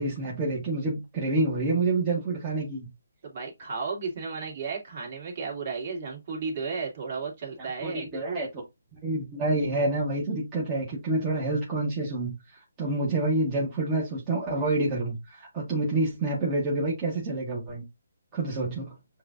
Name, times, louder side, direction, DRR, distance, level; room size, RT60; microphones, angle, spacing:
voice 1, 0.0-2.9 7.6-8.5 9.0-12.3 12.8-17.8 18.3-18.9, right 2 dB, 20° right, 1.3 m, -28 dB
voice 2, 3.2-8.1, right 4 dB, 40° right, 2.2 m, -34 dB
7.6 x 2.6 x 2.5 m
hypercardioid pair, 160°, 0 cm